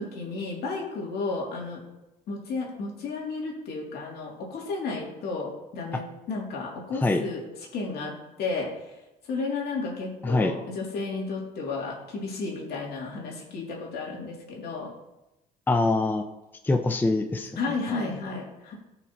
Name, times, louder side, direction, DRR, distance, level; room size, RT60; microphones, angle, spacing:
voice 1, 0.0-1.8 2.3-7.4 7.7-8.1 8.4-8.7 9.3-14.9 17.5-18.7, left 3 dB, 70° left, -2 dB, 2.9 m, -32 dB
voice 2, 6.9-7.2 10.2-10.6 15.7-16.2 16.6-18.1, left 2 dB, 10° left, 6 dB, 0.6 m, -25 dB
15.5 x 5.9 x 3.1 m, 0.95 s
cardioid pair, 110°, 17 cm